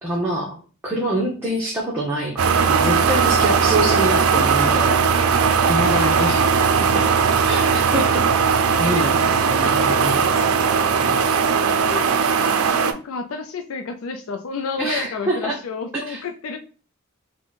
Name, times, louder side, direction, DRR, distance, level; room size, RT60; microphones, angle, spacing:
voice 1, 0.0-2.4 2.7-5.1 5.7-6.4 6.8-7.1 7.4-8.5 8.8-10.4 10.8-11.2 14.8-15.6 15.9-16.2, right 1 dB, 10° right, -4 dB, 0.7 m, -25 dB
sound 1, 2.4-12.9, right 6 dB, 75° right, 0.4 m, -18 dB
voice 2, 6.0-6.3 11.1-12.1 12.7-16.6, left 5 dB, 70° left, 4 dB, 0.4 m, -31 dB
3.7 x 2.1 x 3.9 m, 0.37 s
head